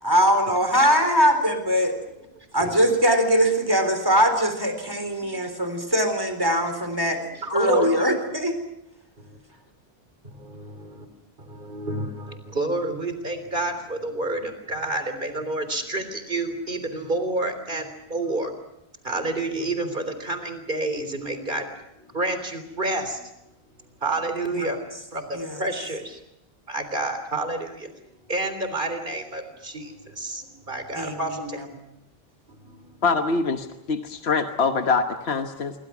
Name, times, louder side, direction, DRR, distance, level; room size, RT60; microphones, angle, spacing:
voice 1, 0.0-1.9 2.5-7.2 7.5-8.6 24.5-24.7 25.3-25.6 31.0-31.6, equal, 20° right, 7 dB, 4.0 m, -21 dB
voice 2, 7.1-7.9 9.2-9.4 10.2-11.1 11.4-18.5 19.0-21.7 22.0-23.2 24.0-24.8 25.1-26.2 26.7-27.9 28.3-31.6 32.5-33.0, right 2 dB, 55° right, 9 dB, 3.8 m, -29 dB
voice 3, 33.0-35.7, left 4 dB, 85° left, 7 dB, 1.5 m, -24 dB
27.0 x 24.0 x 6.1 m, 0.86 s
omnidirectional pair, 1.0 m